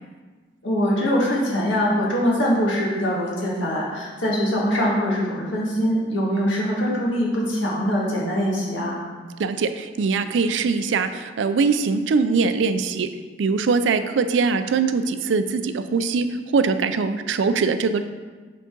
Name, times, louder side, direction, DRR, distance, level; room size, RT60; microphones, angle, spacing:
voice 1, 0.6-9.0, equal, 85° left, -4 dB, 1.7 m, -23 dB
voice 2, 9.4-13.1 13.4-18.1, right 4 dB, 75° right, 11 dB, 0.4 m, -22 dB
7.7 x 3.9 x 3.7 m, 1.4 s
head